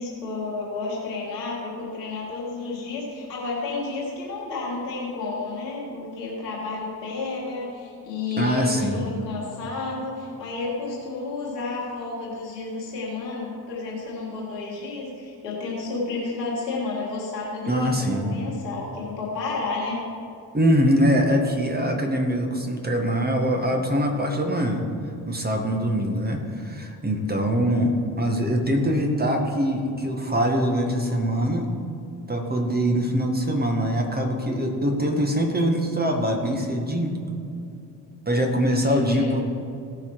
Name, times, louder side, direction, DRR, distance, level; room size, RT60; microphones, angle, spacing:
voice 1, 0.0-20.0 38.8-39.4, left 3 dB, 80° left, -5 dB, 2.3 m, -31 dB
voice 2, 8.4-9.0 17.7-18.4 20.5-24.8 25.3-31.7 32.3-37.2 38.3-39.4, equal, 20° right, 2 dB, 1.8 m, -23 dB
17.0 x 5.7 x 4.8 m, 2.6 s
figure-of-eight pair, 40°, 48 cm